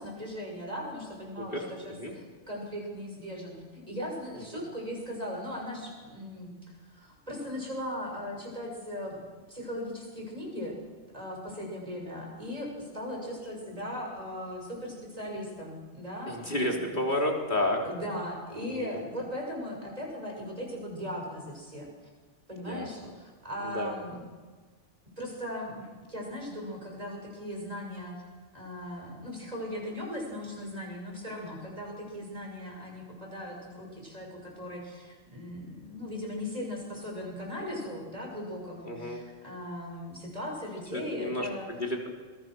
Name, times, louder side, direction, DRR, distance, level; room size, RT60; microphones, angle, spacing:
voice 1, 0.0-10.8 11.1-17.0 17.7-21.9 22.5-24.2 25.2-28.2 28.5-41.7, equal, 30° right, 0 dB, 6.8 m, -38 dB
voice 2, 16.3-17.8 18.7-19.0 22.7-22.9 23.7-23.9 38.9-39.2 40.9-42.1, left 1 dB, 40° left, 0 dB, 4.2 m, -30 dB
27.5 x 21.5 x 6.3 m, 1.4 s
omnidirectional pair, 1.2 m